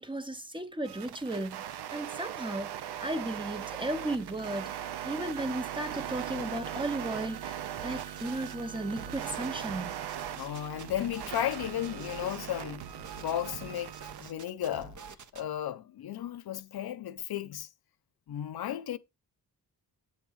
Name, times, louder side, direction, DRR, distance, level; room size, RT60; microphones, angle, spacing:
voice 1, 0.0-2.7 3.0-4.7 5.0-10.0 12.2-12.3, right 1 dB, 15° right, 0.7 m, -35 dB
sound 1, 0.8-14.3, right 10 dB, 85° right, 0.6 m, -39 dB
sound 2, 7.8-8.6 8.9-12.4 12.8-15.4, right 5 dB, 50° right, 0.9 m, -47 dB
voice 2, 10.4-15.0 15.3-17.7 18.3-19.0, left 11 dB, 75° left, 0.7 m, -34 dB
8.2 x 3.4 x 6.2 m
wide cardioid pair, 140°, 39 cm